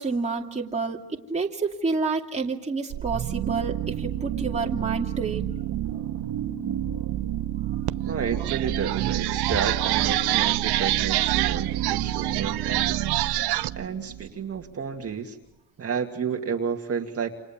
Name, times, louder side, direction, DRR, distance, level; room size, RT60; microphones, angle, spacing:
voice 1, 0.0-5.5, right 4 dB, 15° right, 0 dB, 2.6 m, -29 dB
sound 1, 2.9-14.7, right 11 dB, 55° right, 2.1 m, -30 dB
sound 2, 7.9-8.0 8.3-13.7, right 16 dB, 75° right, 0.9 m, -26 dB
voice 2, 8.1-13.1 13.7-15.4 15.8-17.3, right 6 dB, 35° right, 2 dB, 2.3 m, -31 dB
29.5 x 27.5 x 7.3 m, 0.96 s
cardioid pair, 135°, 40 cm